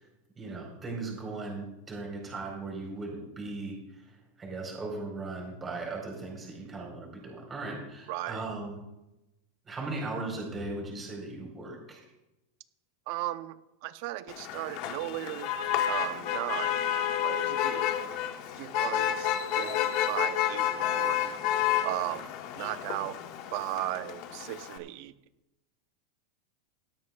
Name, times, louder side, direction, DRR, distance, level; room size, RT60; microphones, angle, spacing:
voice 1, 0.4-4.0 4.4-8.8 9.7-12.0, right 3 dB, 15° right, -1 dB, 4.5 m, -38 dB
voice 2, 8.1-8.4 13.1-15.5 15.9-16.8 17.2-17.9 18.6-19.3 19.6-21.3 21.8-22.3 22.6-23.2 23.5-25.1, right 15 dB, 50° right, 11 dB, 0.8 m, -36 dB
Motor vehicle (road), 14.3-24.8, left 10 dB, 45° left, 1.2 m, -30 dB
17.5 x 13.0 x 2.4 m, 0.94 s
supercardioid pair, 155°, 0 cm